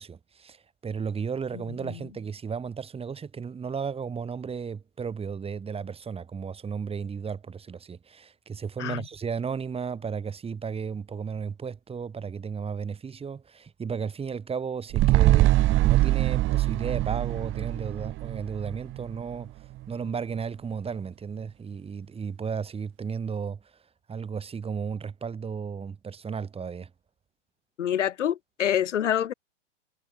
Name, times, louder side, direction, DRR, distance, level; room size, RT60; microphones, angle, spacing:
voice 1, 0.0-23.8 24.1-26.9, right 6 dB, 15° right, 6.0 m, -34 dB
sound 1, 14.9-19.4 19.8-19.9, right 16 dB, 35° right, 3.4 m, -23 dB
voice 2, 27.8-29.3, left 10 dB, 75° left, 3.1 m, -26 dB
hypercardioid pair, 120°, 37 cm